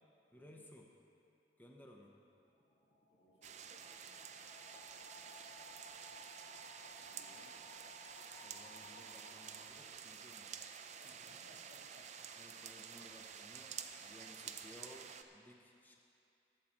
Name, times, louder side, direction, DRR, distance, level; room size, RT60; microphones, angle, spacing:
voice 1, 0.3-0.9 1.6-2.2 8.4-10.8 12.4-16.0, left 1 dB, 10° left, 0 dB, 0.8 m, -59 dB
sound 1, 2.4-10.0, left 1 dB, 50° left, 1.3 m, -59 dB
voice 2, 3.1-4.4 7.0-7.6 11.0-12.5, equal, 75° left, -2 dB, 2.0 m, -66 dB
sound 2, 3.4-15.2, right 7 dB, 40° right, 0.6 m, -51 dB
22.0 x 7.4 x 4.3 m, 2.6 s
head